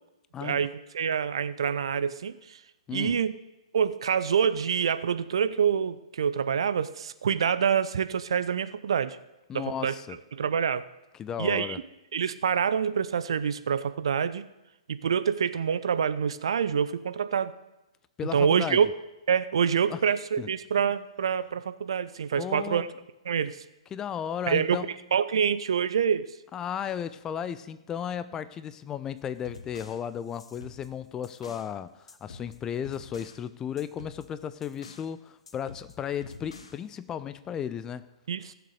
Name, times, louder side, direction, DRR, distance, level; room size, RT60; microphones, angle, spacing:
voice 1, 0.4-2.6 2.9-3.4 3.7-9.2 9.5-9.9 10.3-10.8 11.4-11.8 12.1-14.5 14.9-17.5 18.3-18.9 19.3-22.9 23.3-23.6 24.5-24.8 25.1-26.3 38.3-38.5, right 7 dB, 55° right, 13 dB, 0.8 m, -26 dB
voice 2, 2.9-3.2 9.5-10.2 11.1-11.8 18.2-18.8 19.9-20.0 20.4-20.5 22.4-22.9 23.9-24.9 26.5-38.1, left 8 dB, 15° left, 14 dB, 0.5 m, -35 dB
sound 1, 29.2-31.7 32.1-33.4 33.8-35.1 35.5-36.9, left 4 dB, 65° left, 1.3 m, -48 dB
16.5 x 7.0 x 6.5 m, 0.97 s
figure-of-eight pair, 115°, 3 cm